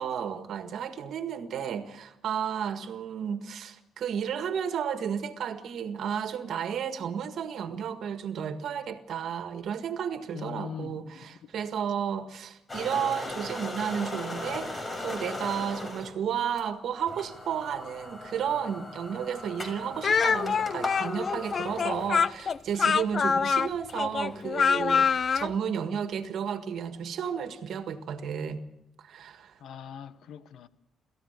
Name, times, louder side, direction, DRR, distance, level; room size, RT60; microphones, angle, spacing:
voice 1, 0.0-14.7 15.0-28.6 29.0-29.6, right 8 dB, 70° right, 1.8 m, -32 dB
voice 2, 10.3-11.5 29.6-30.7, left 8 dB, 75° left, 1.3 m, -41 dB
sound 1, 12.7-16.1 16.6-16.7 17.1-22.5, left 2 dB, 25° left, 6.6 m, -38 dB
Speech, 20.0-25.5, left 6 dB, 45° left, 0.7 m, -25 dB
28.0 x 14.5 x 6.7 m
cardioid pair, 90°, 0 cm